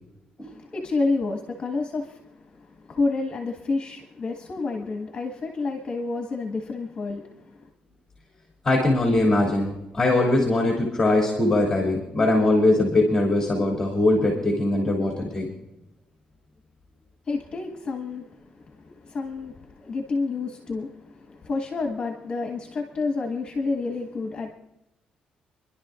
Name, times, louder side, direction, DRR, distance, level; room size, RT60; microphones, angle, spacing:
voice 1, 0.4-7.7 17.3-24.5, left 3 dB, 35° left, 1.6 m, -29 dB
voice 2, 8.6-15.5, left 2 dB, 15° left, 2.8 m, -21 dB
27.5 x 11.5 x 2.5 m
cardioid pair, 135°, 3 cm